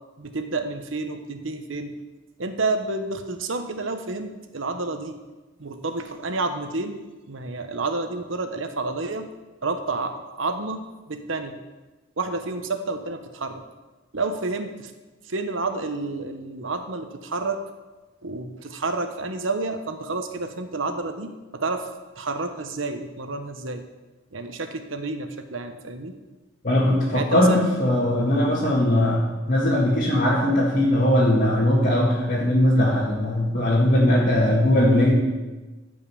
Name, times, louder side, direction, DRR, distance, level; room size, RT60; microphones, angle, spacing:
voice 1, 0.2-1.9 2.4-5.1 5.6-6.9 7.3-9.3 9.6-11.6 12.2-13.6 14.1-14.9 15.3-17.6 18.2-21.9 22.2-23.8 24.3-26.1 27.1-27.6 30.8-31.0, right 3 dB, 75° right, 7 dB, 1.1 m, -29 dB
voice 2, 26.6-35.1, left 1 dB, 45° left, -5 dB, 2.1 m, -20 dB
14.5 x 5.4 x 7.0 m, 1.2 s
head